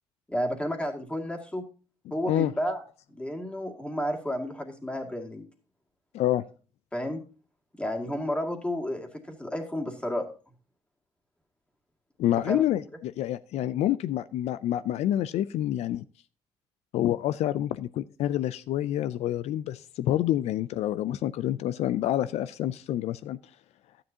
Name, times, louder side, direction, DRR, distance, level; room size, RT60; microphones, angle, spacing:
voice 1, 0.3-1.6 2.1-2.8 3.1-5.5 6.9-7.2 7.8-10.3 12.5-12.7, equal, 10° left, 3 dB, 2.1 m, -31 dB
voice 2, 6.1-6.5 12.2-16.0 16.9-23.4, left 12 dB, 75° left, 15 dB, 0.4 m, -27 dB
12.0 x 9.9 x 2.8 m, 0.36 s
cardioid pair, 100°, 11 cm